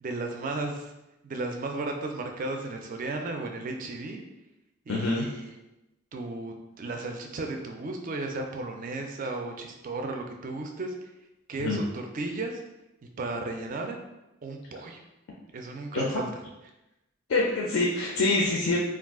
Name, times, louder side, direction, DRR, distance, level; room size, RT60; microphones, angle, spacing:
voice 1, 0.0-0.9 1.2-4.2 4.9-5.5 6.1-11.1 11.5-12.6 13.2-14.0 14.4-15.0 15.5-16.3, right 2 dB, 40° right, 3 dB, 0.3 m, -34 dB
voice 2, 4.9-5.3 11.6-11.8 15.9-16.2 17.3-18.8, left 3 dB, 70° left, -2 dB, 0.4 m, -25 dB
2.4 x 2.3 x 3.5 m, 0.96 s
head